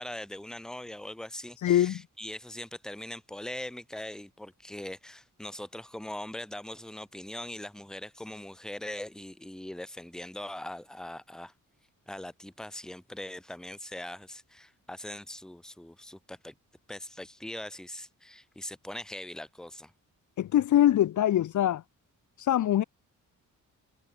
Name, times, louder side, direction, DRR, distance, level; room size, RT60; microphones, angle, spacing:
voice 1, 0.0-11.5 12.1-16.5 16.9-19.9, left 1 dB, ahead, 1.0 m, -41 dB
voice 2, 1.6-2.0 20.4-21.8 22.4-22.8, left 12 dB, 65° left, 0.7 m, -23 dB
wide cardioid pair, 130°, 33 cm